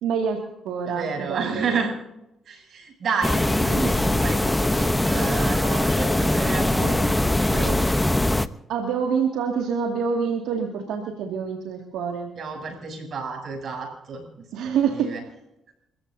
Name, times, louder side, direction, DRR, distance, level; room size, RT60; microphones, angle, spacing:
voice 1, 0.0-1.7 8.7-12.3 14.5-15.1, right 6 dB, 90° right, 1 dB, 2.1 m, -26 dB
voice 2, 0.9-1.9 2.5-7.8 12.4-15.2, right 5 dB, 60° right, 3 dB, 7.7 m, -30 dB
sound 1, 3.2-8.5, left 1 dB, 10° left, 0.8 m, -22 dB
29.5 x 15.5 x 2.7 m, 0.84 s
cardioid pair, 90°, 0 cm